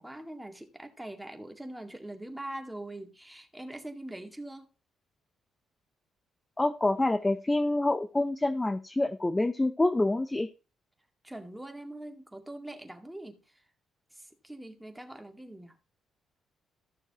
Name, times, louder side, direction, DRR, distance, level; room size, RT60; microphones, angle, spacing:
voice 1, 0.0-4.7 11.2-13.6 14.1-15.7, right 1 dB, 5° right, 2.0 m, -43 dB
voice 2, 6.6-10.5, left 2 dB, 15° left, 0.6 m, -27 dB
15.0 x 6.5 x 3.0 m
cardioid pair, 90°, 0 cm